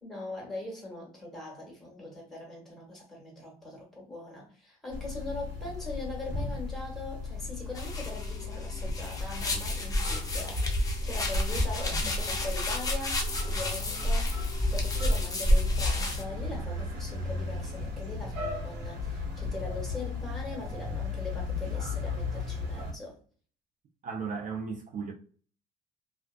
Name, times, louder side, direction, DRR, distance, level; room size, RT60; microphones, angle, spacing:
voice 1, 0.0-10.6 11.0-14.4 14.7-23.2, left 2 dB, ahead, 1.3 m, -41 dB
sound 1, 4.9-22.9, left 4 dB, 90° right, 1.1 m, -36 dB
sound 2, 7.8-16.2, left 1 dB, 20° left, 0.6 m, -30 dB
voice 2, 24.0-25.1, right 5 dB, 50° right, 0.4 m, -35 dB
2.4 x 2.2 x 2.3 m
cardioid pair, 110°, 17 cm